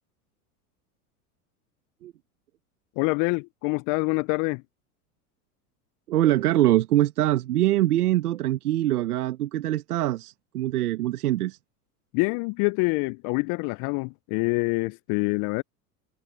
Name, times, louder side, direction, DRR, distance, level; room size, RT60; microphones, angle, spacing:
voice 1, 3.0-4.6 12.1-15.6, left 29 dB, 45° left, 0.5 m, -26 dB
voice 2, 6.1-11.6, right 14 dB, 80° right, 1.4 m, -23 dB
hypercardioid pair, 85°, 45 cm